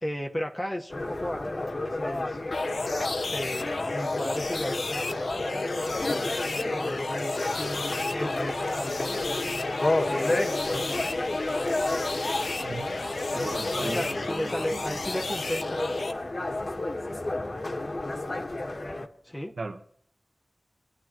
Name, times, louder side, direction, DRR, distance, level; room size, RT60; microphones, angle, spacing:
voice 1, 0.0-1.6 2.0-2.4 3.3-5.3 5.7-9.3 10.1-11.1 13.8-16.1 19.2-19.5, equal, 20° left, 1.3 m, -35 dB
sound 1, 0.9-19.1, left 2 dB, 50° left, 1.5 m, -31 dB
sound 2, 2.5-16.1, left 3 dB, 80° left, 1.0 m, -33 dB
voice 2, 12.6-13.0 13.3-14.8 19.6-19.8, right 3 dB, 75° right, 1.5 m, -37 dB
23.5 x 11.5 x 3.0 m
wide cardioid pair, 60°, 0 cm